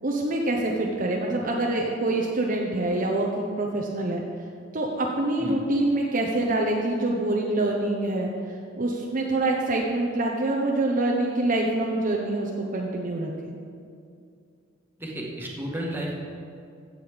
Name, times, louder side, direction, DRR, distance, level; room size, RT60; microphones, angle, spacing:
voice 1, 0.0-4.2 4.7-8.3 8.8-13.3, right 2 dB, 45° right, -1 dB, 1.0 m, -25 dB
voice 2, 15.0-16.2, right 1 dB, 10° right, -3 dB, 1.8 m, -32 dB
15.0 x 7.8 x 5.1 m, 2.4 s
head